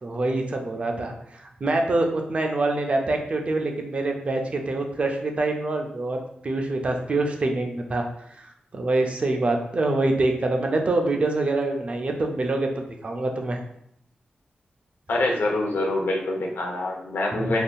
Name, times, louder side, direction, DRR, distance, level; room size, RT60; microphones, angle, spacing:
voice 1, 0.0-8.1 8.4-8.5 8.7-13.6 17.3-17.5, right 2 dB, 40° right, 3 dB, 0.4 m, -25 dB
voice 2, 15.1-17.6, left 2 dB, 85° left, 0 dB, 0.6 m, -25 dB
3.4 x 2.6 x 2.3 m, 0.73 s
wide cardioid pair, 150°, 3 cm